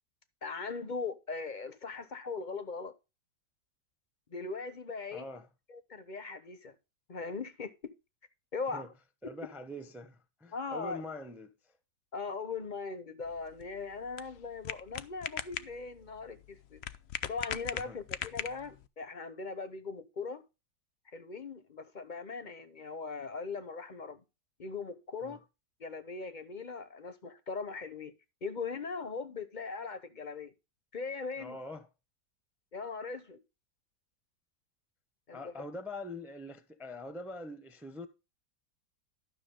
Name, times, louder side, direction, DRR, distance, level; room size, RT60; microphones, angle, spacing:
voice 1, 0.4-2.9 4.3-5.3 5.7-6.7 7.1-7.9 8.5-8.9 10.5-11.0 12.1-16.8 17.2-20.4 21.1-24.2 24.6-25.4 25.8-28.1 28.4-30.5 30.9-31.6 32.7-33.4 35.3-35.5, left 4 dB, 35° left, 0.8 m, -40 dB
voice 2, 5.1-5.5 8.7-8.9 9.2-11.5 17.7-18.0 25.2-25.4 31.4-31.9 35.3-38.1, left 1 dB, ahead, 0.7 m, -43 dB
sound 1, 13.2-18.9, left 9 dB, 80° left, 0.5 m, -41 dB
12.0 x 6.3 x 3.8 m
omnidirectional pair, 1.9 m